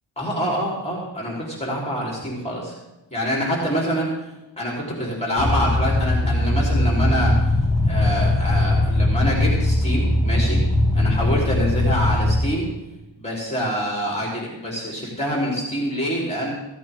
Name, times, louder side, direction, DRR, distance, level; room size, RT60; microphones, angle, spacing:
voice 1, 0.2-2.7 3.1-4.3 4.6-7.3 7.8-10.6 10.9-12.7 13.2-16.5, equal, 15° left, -3 dB, 3.4 m, -26 dB
sound 1, 5.4-12.5, left 1 dB, 35° left, 2.0 m, -20 dB
15.5 x 14.5 x 3.5 m, 0.99 s
wide cardioid pair, 125°, 44 cm